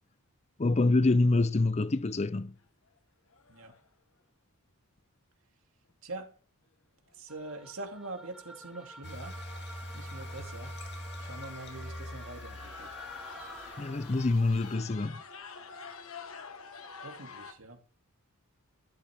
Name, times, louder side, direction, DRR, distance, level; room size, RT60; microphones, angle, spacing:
voice 1, 0.6-2.5 13.8-15.2, left 2 dB, 30° left, 0.5 m, -26 dB
sound 1, 1.9-2.4 2.9-3.0 3.3-3.9 7.1-7.2 8.3-8.4 8.6-9.0 9.5-9.6 10.3-10.4 10.6-10.8 11.2-11.7 12.2-17.5, left 5 dB, 65° left, 1.4 m, -48 dB
voice 2, 7.1-9.4 9.9-10.7 11.2-12.9 17.0-17.8, right 2 dB, 60° right, 2.6 m, -43 dB
sound 2, 7.3-14.5, right 1 dB, ahead, 1.1 m, -50 dB
sound 3, 9.0-14.8, left 1 dB, 50° left, 2.4 m, -44 dB
13.0 x 12.5 x 3.6 m
head